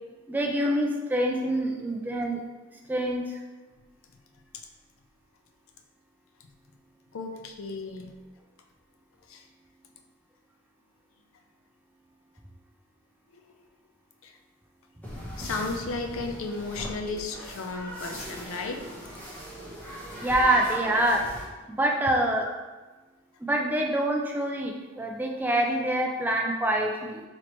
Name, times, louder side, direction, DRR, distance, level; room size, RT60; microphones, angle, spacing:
voice 1, 0.3-2.4 2.9-3.2 20.2-21.2 21.7-22.5 23.4-27.2, right 1 dB, 10° right, 0 dB, 0.3 m, -25 dB
voice 2, 7.1-8.1 9.3-9.4 14.2-14.3 15.4-18.9, left 3 dB, 70° left, 4 dB, 0.4 m, -34 dB
sound 1, 15.0-21.5, equal, 10° left, 0.7 m, -40 dB
4.2 x 3.1 x 3.0 m, 1.3 s
head